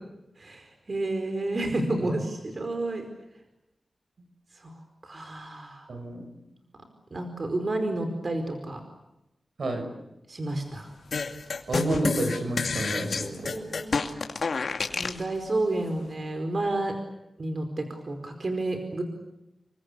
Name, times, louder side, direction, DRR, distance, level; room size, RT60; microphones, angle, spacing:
voice 1, 0.4-3.1 4.6-4.7 5.0-5.9 7.1-8.8 10.3-10.9 13.2-14.2 14.9-17.0 17.4-19.0, right 2 dB, 45° right, 6 dB, 4.8 m, -30 dB
voice 2, 5.9-6.3 9.6-9.9 11.7-13.6, right 1 dB, 70° right, 7 dB, 6.1 m, -30 dB
sound 1, 11.1-15.2, left 4 dB, 65° left, 2.5 m, -29 dB
29.0 x 23.5 x 8.5 m, 0.92 s
wide cardioid pair, 80°, 0 cm